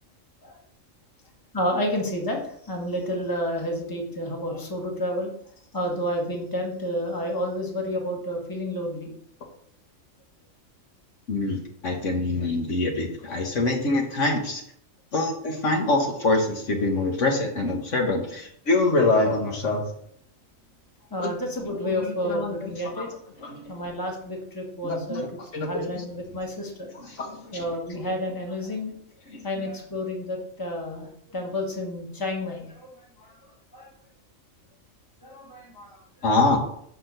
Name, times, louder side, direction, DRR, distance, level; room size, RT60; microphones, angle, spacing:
voice 1, 1.5-5.3 5.7-9.1 21.1-23.1 23.7-25.2 25.6-27.1 27.5-29.0 29.4-32.9 33.2-33.3 33.7-33.9 35.2-36.0, equal, 15° left, 0 dB, 1.4 m, -30 dB
voice 2, 11.3-14.6 15.1-19.8 21.2-21.3 21.7-22.7 23.0-23.1 23.4-23.6 24.8-25.3 25.5-26.0 27.0-27.6 29.3-29.6 36.2-36.6, left 2 dB, 65° left, 1 dB, 1.5 m, -25 dB
5.9 x 4.9 x 6.5 m, 0.68 s
omnidirectional pair, 1.4 m